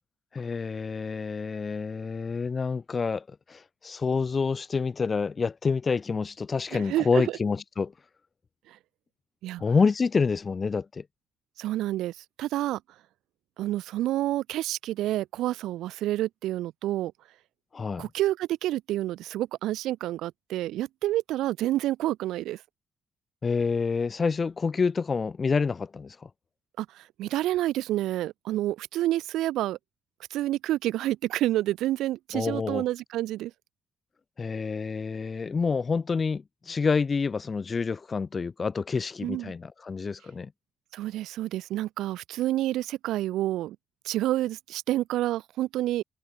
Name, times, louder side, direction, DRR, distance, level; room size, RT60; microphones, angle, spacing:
voice 1, 0.3-7.9 9.6-11.0 17.7-18.1 23.4-26.3 32.3-32.8 34.4-40.5, left 5 dB, 35° left, 0.9 m, -28 dB
voice 2, 6.7-7.4 8.7-8.8 9.4-9.6 11.6-12.8 13.6-17.1 18.0-22.6 26.8-29.8 30.3-33.5 39.2-39.5 40.9-43.8 44.0-46.0, right 14 dB, 85° right, 0.8 m, -29 dB
cardioid pair, 90°, 0 cm